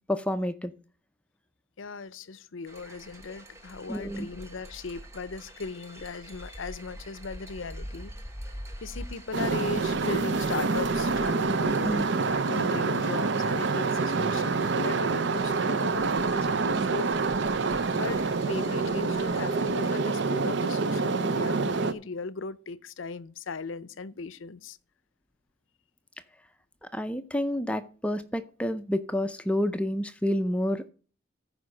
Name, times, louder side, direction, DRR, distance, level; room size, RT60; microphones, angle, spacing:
voice 1, 0.1-0.7 3.9-4.3 11.8-12.1 26.9-30.9, left 1 dB, 5° left, 0.5 m, -29 dB
voice 2, 1.8-8.1 8.8-17.6 17.9-24.8, left 4 dB, 75° left, 0.6 m, -38 dB
sound 1, 2.7-20.0, right 1 dB, 15° right, 1.0 m, -46 dB
sound 2, 9.3-21.9, right 4 dB, 60° right, 0.6 m, -27 dB
14.0 x 5.1 x 6.3 m
head